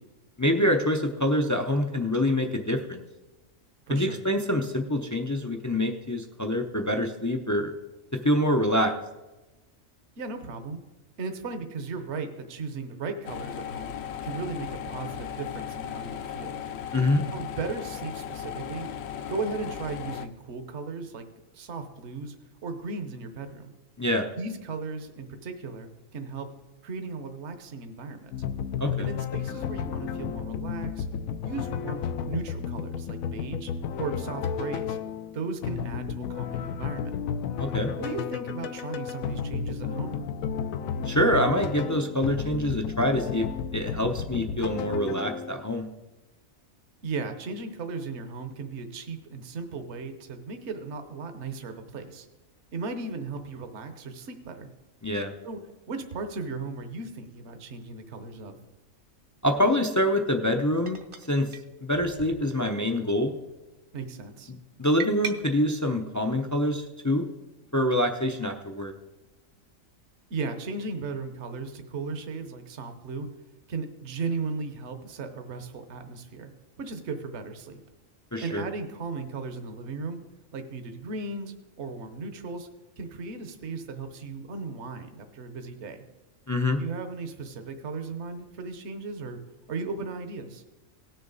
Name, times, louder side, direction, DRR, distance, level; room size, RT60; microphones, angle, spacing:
voice 1, 0.4-3.0 3.9-7.7 8.2-8.9 16.9-17.2 24.0-24.3 28.8-29.1 37.6-37.9 41.0-43.5 43.7-45.9 55.0-55.3 59.4-61.5 61.8-63.3 64.5-67.3 67.7-68.9 78.3-78.6 86.5-86.8, left 1 dB, 25° left, 4 dB, 0.4 m, -25 dB
voice 2, 3.9-4.2 10.2-10.8 11.2-13.9 14.2-16.6 17.3-18.9 19.2-21.3 21.5-22.4 22.6-23.7 24.4-26.5 26.8-28.3 29.0-31.1 31.4-33.7 34.0-35.0 35.3-37.1 38.0-40.2 47.0-52.3 52.7-54.7 55.4-55.6 55.9-58.6 63.9-64.5 70.3-73.3 73.7-76.5 76.8-77.8 78.4-80.2 80.5-82.7 83.0-86.0 86.8-89.4 89.7-90.6, right 4 dB, 60° right, 7 dB, 1.2 m, -36 dB
sound 1, 13.2-20.3, left 9 dB, 65° left, 0.7 m, -36 dB
sound 2, 28.3-45.7, left 7 dB, 85° left, 1.0 m, -32 dB
sound 3, 57.8-57.9 59.5-59.8 60.8-61.3 61.5-61.6 61.9-62.8 63.2-63.5 65.0-65.4, right 5 dB, 30° right, 0.6 m, -39 dB
18.0 x 6.6 x 4.0 m, 1.1 s
omnidirectional pair, 1.4 m